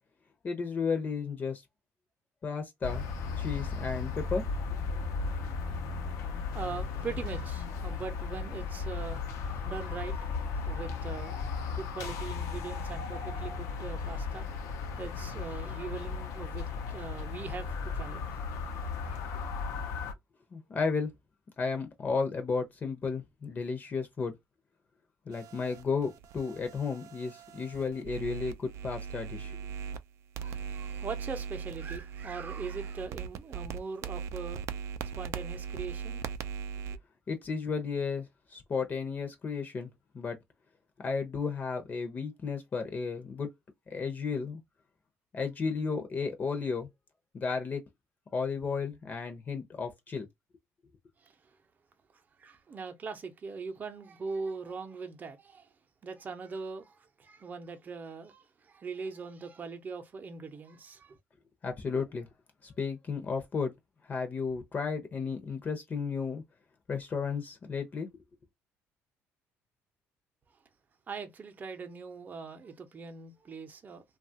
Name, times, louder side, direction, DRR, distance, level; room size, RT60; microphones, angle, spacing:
voice 1, 0.4-1.6 2.4-3.0 3.4-4.4 20.5-21.1 21.6-24.3 25.3-29.6 37.3-39.9 40.1-40.4 41.0-43.5 43.9-44.6 45.3-46.9 47.3-47.8 48.3-50.3 61.6-62.3 62.6-63.7 64.1-66.4 66.9-68.1, left 5 dB, 35° left, 0.7 m, -33 dB
sound 1, 2.8-20.1, left 5 dB, 75° left, 0.7 m, -35 dB
voice 2, 6.5-14.6 15.0-19.2 30.4-34.8 35.1-36.2 51.2-51.4 52.4-55.7 56.0-61.2 71.1-74.0, right 4 dB, 30° right, 0.7 m, -41 dB
sound 2, 25.3-30.0 30.3-37.0, right 7 dB, 65° right, 0.4 m, -39 dB
2.9 x 2.3 x 2.7 m
cardioid pair, 105°, 5 cm